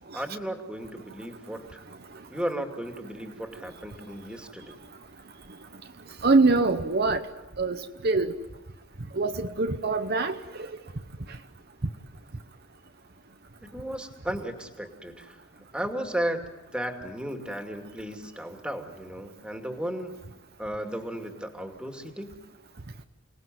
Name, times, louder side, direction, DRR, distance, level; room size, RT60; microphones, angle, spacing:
voice 1, 0.1-1.8 2.3-4.8 13.7-15.4 15.7-16.4 16.7-20.2 20.6-22.3, right 1 dB, 5° right, 5 dB, 2.5 m, -34 dB
voice 2, 6.2-7.2 7.6-8.3 9.2-10.4, right 3 dB, 50° right, 7 dB, 1.0 m, -23 dB
29.5 x 19.5 x 9.4 m, 1.0 s
head